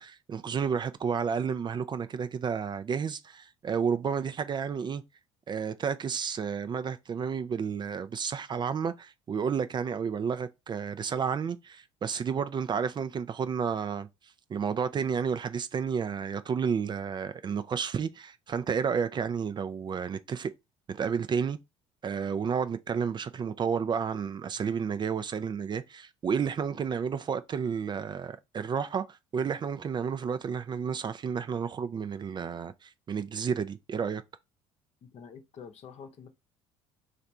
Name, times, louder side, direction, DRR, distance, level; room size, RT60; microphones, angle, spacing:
voice 1, 0.0-5.0 5.5-14.1 14.5-20.5 20.9-21.6 22.0-34.2, right 6 dB, 35° right, 0.4 m, -31 dB
voice 2, 35.0-36.3, left 6 dB, 50° left, 0.8 m, -47 dB
3.3 x 2.5 x 4.2 m
hypercardioid pair, 65°, 14 cm